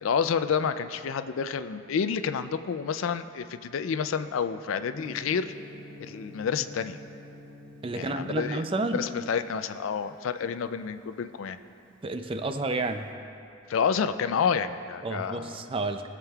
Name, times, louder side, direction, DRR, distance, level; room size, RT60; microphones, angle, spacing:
voice 1, 0.0-5.5 6.0-7.0 7.9-8.6 8.9-11.6 13.7-15.6, left 6 dB, 90° left, 11 dB, 0.4 m, -29 dB
Gong, 4.9-13.0, equal, 5° left, 0.9 m, -49 dB
voice 2, 7.8-9.0 12.0-13.1 15.0-16.0, right 2 dB, 25° right, 7 dB, 0.4 m, -30 dB
21.0 x 7.3 x 2.3 m, 2.7 s
head